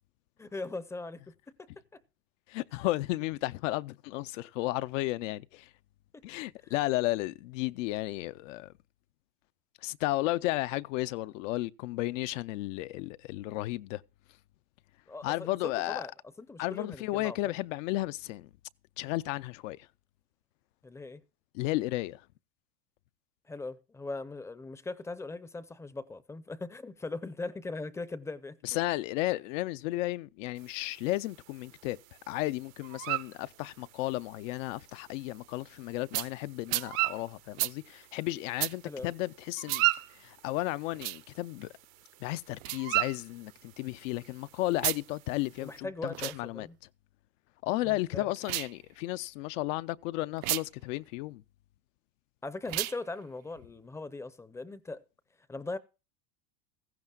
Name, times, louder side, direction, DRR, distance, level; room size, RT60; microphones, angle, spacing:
voice 1, 0.4-1.3 1.6-1.7 6.1-6.2 6.6-6.7 15.1-16.1 16.4-17.5 20.8-21.2 23.5-28.6 38.8-39.1 45.6-46.8 47.8-48.3 52.4-55.0 55.5-55.8, left 3 dB, 5° left, 0.5 m, -40 dB
voice 2, 2.5-5.7 6.2-8.7 9.8-14.0 15.2-16.0 16.6-18.5 19.0-19.9 21.5-22.2 28.6-32.0 32.3-39.9 40.1-41.7 42.2-46.7 47.6-51.4, left 18 dB, 70° left, 0.6 m, -33 dB
sound 1, 30.6-45.8, right 20 dB, 85° right, 1.1 m, -38 dB
sound 2, 36.1-36.3 36.7-36.9 37.6-37.7 38.6-38.7 39.7-39.8 40.9-41.2 42.6-42.8 44.7-45.0 46.1-46.4 48.4-48.7 50.4-50.6 52.6-53.0, right 20 dB, 60° right, 0.5 m, -32 dB
16.5 x 14.5 x 2.3 m
supercardioid pair, 135°, 40 cm